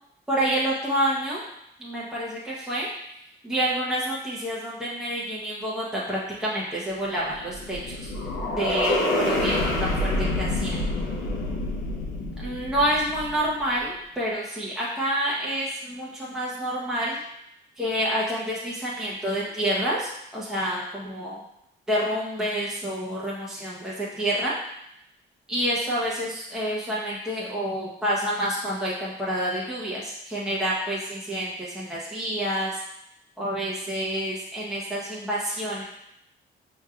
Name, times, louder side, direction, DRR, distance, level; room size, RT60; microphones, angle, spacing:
voice 1, 0.3-1.4 1.8-2.9 3.4-8.1 8.6-10.8 12.4-17.2 17.8-21.4 21.9-24.5 25.5-32.8 33.4-35.8, right 1 dB, 5° right, -7 dB, 0.9 m, -28 dB
sound 1, 7.1-13.6, left 1 dB, 90° left, 0.8 m, -27 dB
5.3 x 2.9 x 2.4 m, 0.78 s
cardioid pair, 90°, 20 cm